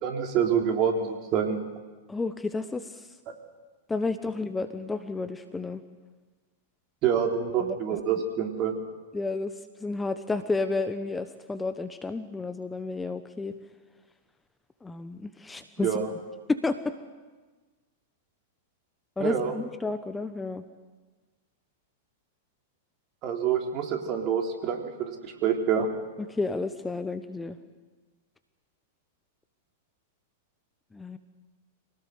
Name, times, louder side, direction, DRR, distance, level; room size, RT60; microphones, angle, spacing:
voice 1, 0.0-1.6 7.0-8.7 15.8-16.1 19.2-19.5 23.2-25.9, right 7 dB, 40° right, 2 dB, 3.8 m, -27 dB
voice 2, 2.1-3.1 3.9-5.8 7.6-7.8 9.1-9.5 9.8-13.5 14.8-16.0 16.5-16.9 19.2-20.6 26.3-27.6 30.9-31.2, left 3 dB, 10° left, 10 dB, 1.2 m, -31 dB
24.5 x 18.0 x 8.0 m, 1.3 s
figure-of-eight pair, 100°, 0 cm